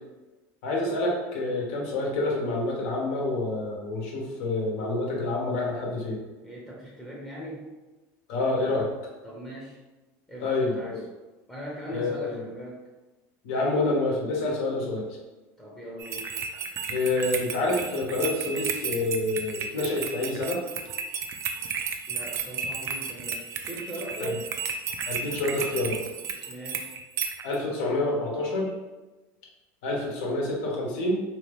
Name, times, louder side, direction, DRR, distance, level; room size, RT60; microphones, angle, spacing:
voice 1, 0.6-6.2 8.3-8.9 10.4-11.0 11.9-12.3 13.4-15.1 16.9-20.6 25.1-26.0 27.4-28.7 29.8-31.2, left 2 dB, 75° left, -2 dB, 0.9 m, -27 dB
voice 2, 6.4-7.7 9.2-9.8 10.3-11.1 11.5-12.8 15.6-16.3 22.1-24.5 26.4-27.0, right 1 dB, 10° left, -5 dB, 0.7 m, -39 dB
sound 1, 16.0-27.6, right 5 dB, 35° right, 0.3 m, -33 dB
2.8 x 2.5 x 3.3 m, 1.1 s
supercardioid pair, 125°, 7 cm